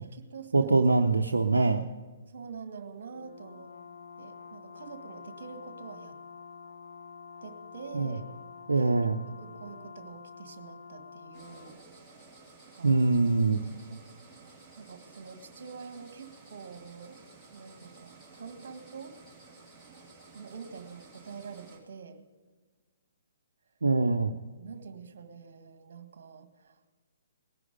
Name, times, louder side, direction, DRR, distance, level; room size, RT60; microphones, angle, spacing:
voice 1, 0.0-0.7 2.3-3.7 4.2-6.2 7.4-8.2 8.7-8.9 9.3-11.8 12.7-13.1 13.9-14.0 14.8-17.2 17.5-19.1 20.3-22.2 24.6-26.8, right 5 dB, 50° right, 8 dB, 1.7 m, -46 dB
voice 2, 0.5-1.8 7.9-8.1 8.7-9.1 12.8-13.6 23.8-24.3, right 3 dB, 75° right, 4 dB, 0.7 m, -23 dB
Brass instrument, 3.1-11.8, left 5 dB, 60° left, 1.4 m, -48 dB
sound 1, 11.3-21.8, right 3 dB, ahead, 3.2 m, -54 dB
19.5 x 11.0 x 5.2 m, 1.4 s
figure-of-eight pair, 125°, 0 cm